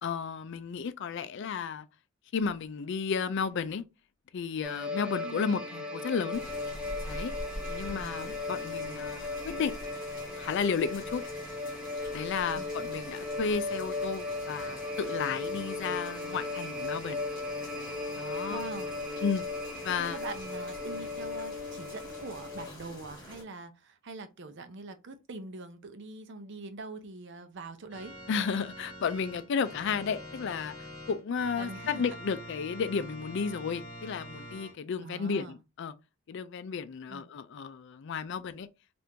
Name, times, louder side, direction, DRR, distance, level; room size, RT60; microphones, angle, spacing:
voice 1, 0.0-1.9 2.3-3.8 4.3-6.4 7.0-7.3 7.7-9.7 10.4-11.2 12.1-17.2 18.2-18.6 19.2-19.5 19.8-20.2 28.3-30.7 31.1-35.9 36.3-38.7, left 6 dB, 60° left, 0.4 m, -33 dB
sound 1, 4.6-22.7, left 3 dB, 5° right, 0.5 m, -37 dB
voice 2, 5.2-5.6 7.9-8.3 12.5-12.7 18.5-18.9 20.0-28.1 31.6-32.0 35.0-35.6 37.1-37.3, right 3 dB, 60° right, 0.6 m, -43 dB
sound 2, 6.3-23.4, left 1 dB, 20° left, 1.0 m, -46 dB
Organ, 27.9-34.7, equal, 40° left, 1.2 m, -45 dB
2.8 x 2.5 x 3.5 m
head